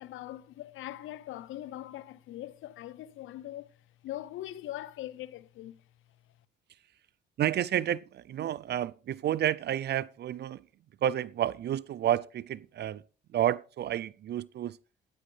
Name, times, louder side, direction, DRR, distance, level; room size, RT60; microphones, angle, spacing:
voice 1, 0.0-3.7 4.0-5.8, left 14 dB, 85° left, 0.7 m, -41 dB
voice 2, 7.4-10.6 11.0-13.0 13.3-14.8, right 11 dB, 55° right, 0.4 m, -30 dB
13.0 x 9.9 x 3.3 m
cardioid pair, 90°, 20 cm